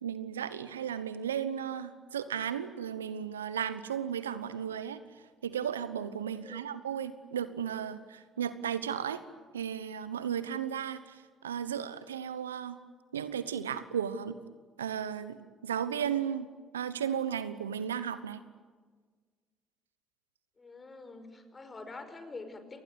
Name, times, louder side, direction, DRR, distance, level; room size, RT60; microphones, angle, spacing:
voice 1, 0.0-5.0 5.4-9.2 9.5-12.8 13.1-14.4 14.8-16.5 16.7-18.4, right 8 dB, 90° right, 14 dB, 1.0 m, -35 dB
voice 2, 6.3-6.8 20.6-22.8, left 3 dB, 30° left, 9 dB, 5.1 m, -46 dB
27.5 x 20.0 x 9.7 m, 1.5 s
hypercardioid pair, 50°, 0 cm